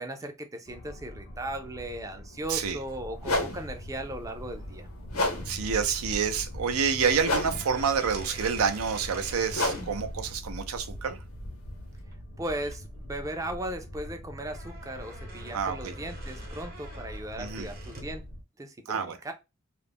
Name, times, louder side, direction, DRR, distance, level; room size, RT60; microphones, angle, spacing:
voice 1, 0.0-4.9 12.4-18.2 18.6-19.3, right 1 dB, 15° right, 0.3 m, -37 dB
sound 1, 0.7-18.4, equal, 50° left, 0.6 m, -42 dB
sound 2, 2.4-2.6 3.2-12.0, left 2 dB, 85° left, 0.9 m, -34 dB
voice 2, 5.5-11.2 15.5-15.9 17.4-17.7 18.9-19.2, right 6 dB, 90° right, 0.5 m, -28 dB
sound 3, 7.0-9.8 12.0-12.1 12.4-12.8 13.3-18.2, right 2 dB, 45° right, 0.7 m, -47 dB
2.4 x 2.0 x 3.3 m
head